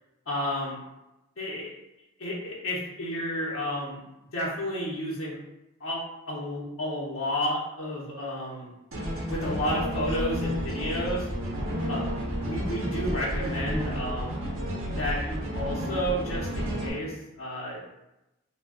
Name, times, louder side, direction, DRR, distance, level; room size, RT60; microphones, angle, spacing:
voice 1, 0.3-0.8 1.4-1.7 2.2-4.0 4.3-5.4 5.8-6.0 6.3-8.7 9.3-11.3 11.9-12.0 12.4-14.5 15.0-17.8, equal, 70° left, -5 dB, 0.6 m, -31 dB
sound 1, 8.9-16.9, equal, 70° right, 0.7 m, -31 dB
2.3 x 2.1 x 3.5 m, 0.93 s
head